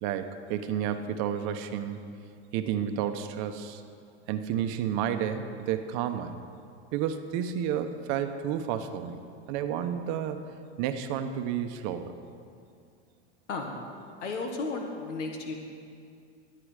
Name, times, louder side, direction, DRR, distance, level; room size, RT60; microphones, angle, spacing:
voice 1, 0.0-2.1 2.5-3.8 4.3-6.4 6.9-9.2 9.5-10.4 10.8-12.1, right 9 dB, 55° right, 8 dB, 0.9 m, -31 dB
voice 2, 14.2-15.5, left 3 dB, 90° left, 2 dB, 1.4 m, -33 dB
12.0 x 8.6 x 4.9 m, 2.4 s
hypercardioid pair, 100°, 35 cm